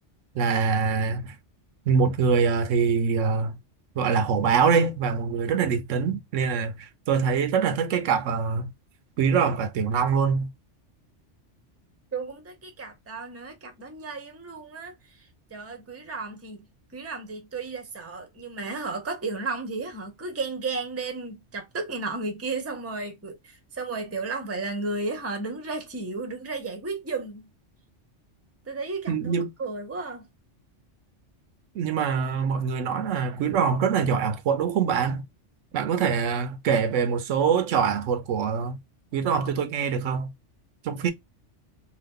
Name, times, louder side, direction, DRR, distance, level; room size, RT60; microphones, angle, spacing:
voice 1, 0.3-1.4 1.9-3.5 4.0-8.7 9.2-10.5 29.1-29.5 31.7-35.2 35.7-38.8 39.1-40.3 40.8-41.1, right 6 dB, 85° right, 1.0 m, -24 dB
voice 2, 12.1-14.9 15.5-16.7 16.9-27.4 28.7-29.3 29.6-30.3, right 3 dB, 15° right, 0.6 m, -33 dB
2.8 x 2.3 x 3.5 m
omnidirectional pair, 1.2 m